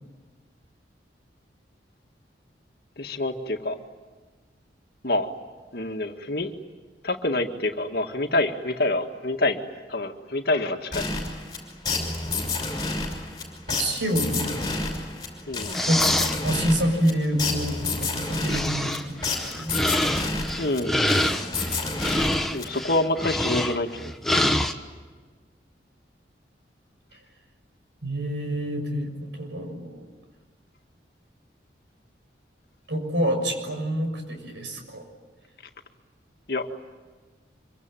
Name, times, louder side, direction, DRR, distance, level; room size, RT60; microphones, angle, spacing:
voice 1, 3.0-3.8 5.0-5.3 5.7-6.5 7.0-9.6 9.9-11.1 15.5-15.8 20.6-21.1 22.5-24.1 36.5-36.8, left 2 dB, 55° left, 5 dB, 2.0 m, -27 dB
sound 1, 10.9-23.0, left 3 dB, 20° left, 5.8 m, -30 dB
voice 2, 13.7-14.7 15.9-19.8 28.0-30.0 32.9-35.0, equal, 80° right, 4 dB, 6.7 m, -27 dB
sound 2, 15.7-16.4 18.0-18.1 18.5-24.7, left 1 dB, ahead, 1.2 m, -26 dB
25.5 x 24.5 x 9.2 m, 1.4 s
head